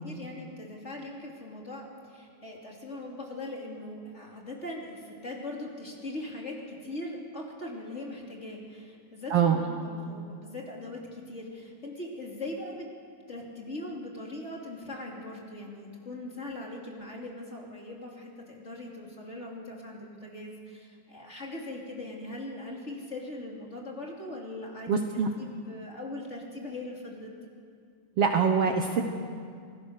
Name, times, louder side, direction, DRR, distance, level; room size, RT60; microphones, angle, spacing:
voice 1, 0.0-12.9 13.3-25.0 25.4-27.3, left 1 dB, 25° left, -2 dB, 3.0 m, -40 dB
voice 2, 24.9-25.3 28.2-29.0, right 6 dB, 60° right, 4 dB, 1.8 m, -24 dB
27.0 x 18.5 x 6.5 m, 2.2 s
omnidirectional pair, 3.4 m